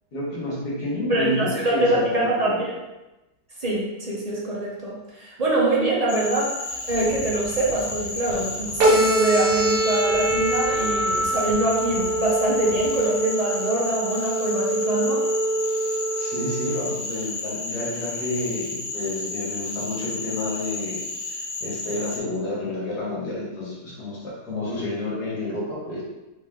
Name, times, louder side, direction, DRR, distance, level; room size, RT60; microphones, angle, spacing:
voice 1, 0.1-2.6 16.2-26.0, left 1 dB, 70° left, -5 dB, 1.9 m, -30 dB
voice 2, 1.1-2.7 3.6-6.5 6.8-15.3, right 2 dB, 35° right, -5 dB, 0.6 m, -24 dB
Cricket / Frog, 6.1-22.2, left 3 dB, 90° left, 1.4 m, -32 dB
sound 1, 6.7-13.0, right 1 dB, 55° right, 1.1 m, -42 dB
sound 2, 8.8-16.8, right 1 dB, 80° right, 1.4 m, -24 dB
4.2 x 3.1 x 3.6 m, 1.0 s
omnidirectional pair, 1.8 m